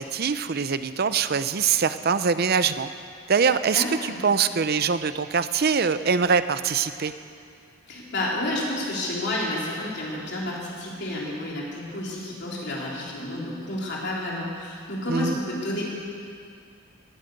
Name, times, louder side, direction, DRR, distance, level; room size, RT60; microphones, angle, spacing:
voice 1, 0.0-2.9 3.3-7.1 15.1-15.4, right 6 dB, 45° right, 12 dB, 0.6 m, -23 dB
voice 2, 3.7-4.2 7.9-16.0, left 1 dB, 50° left, -4 dB, 3.6 m, -30 dB
19.5 x 9.2 x 7.9 m, 2.4 s
head